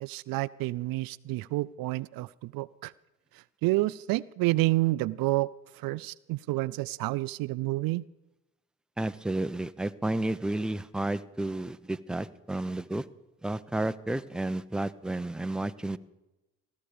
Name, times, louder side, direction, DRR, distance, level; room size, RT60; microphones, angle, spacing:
voice 1, 0.0-2.9 3.6-5.5 5.8-8.0, right 19 dB, 60° right, 20 dB, 0.5 m, -29 dB
voice 2, 9.0-13.1 13.4-16.0, right 1 dB, ahead, 12 dB, 0.7 m, -31 dB
16.5 x 13.5 x 5.0 m, 1.0 s
hypercardioid pair, 65°, 39 cm